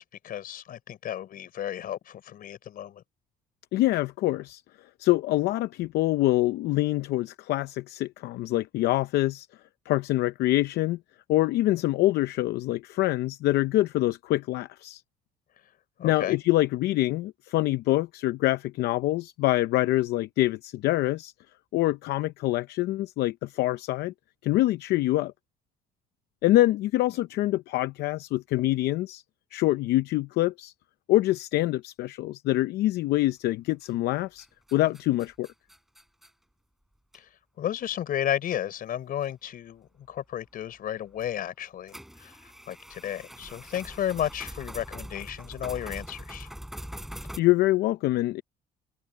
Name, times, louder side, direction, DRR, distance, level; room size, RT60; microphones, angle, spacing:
voice 1, 0.0-3.0 16.0-16.4 37.6-42.3 42.7-46.5, left 11 dB, 60° left, 4.5 m, -33 dB
voice 2, 3.7-4.6 5.0-9.5 9.9-11.0 11.3-15.0 16.0-21.3 21.7-24.1 24.4-25.3 26.4-29.2 29.5-30.7 31.1-34.5 34.7-35.5 47.4-48.4, left 16 dB, 80° left, 0.6 m, -25 dB
sound 1, 33.8-34.1 34.4-36.3 37.1-37.2 37.9-38.0 39.2-39.3 41.2-41.3 41.9-47.4, equal, ahead, 5.4 m, -42 dB
cardioid pair, 110°, 17 cm